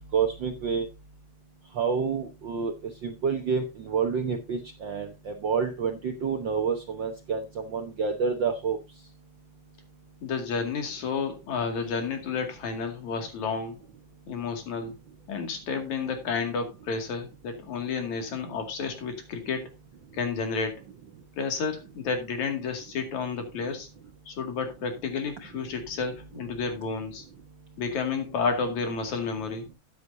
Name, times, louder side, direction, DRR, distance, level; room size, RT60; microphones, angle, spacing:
voice 1, 0.1-0.9 1.8-2.7 3.0-8.8, right 6 dB, 60° right, 5 dB, 1.2 m, -28 dB
voice 2, 10.2-13.8 14.3-15.0 15.3-19.7 20.1-20.8 21.3-23.9 24.3-27.3 27.8-29.6, left 5 dB, 70° left, 4 dB, 3.6 m, -31 dB
13.0 x 9.5 x 2.7 m, 0.25 s
omnidirectional pair, 3.4 m